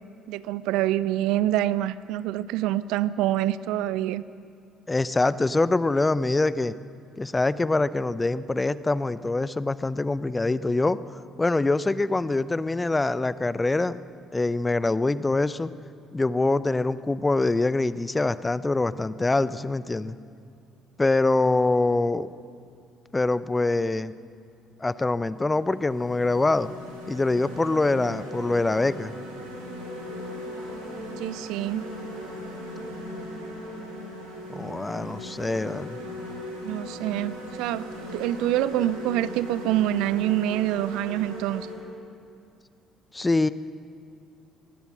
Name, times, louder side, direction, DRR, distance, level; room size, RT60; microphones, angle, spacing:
voice 1, 0.3-4.2 31.2-31.8 36.6-41.7, right 13 dB, 65° right, 18 dB, 0.5 m, -26 dB
voice 2, 4.9-6.7 7.2-11.0 11.4-14.0 14.3-15.7 16.1-20.1 21.0-22.3 23.1-24.1 24.8-26.7 27.1-29.1 34.5-36.0 43.1-43.5, left 2 dB, 20° left, 16 dB, 0.7 m, -24 dB
sound 1, 25.0-25.1 25.6-41.7, equal, 85° right, 4.4 m, -38 dB
25.0 x 19.0 x 6.3 m, 2.4 s
figure-of-eight pair, 50°, 0 cm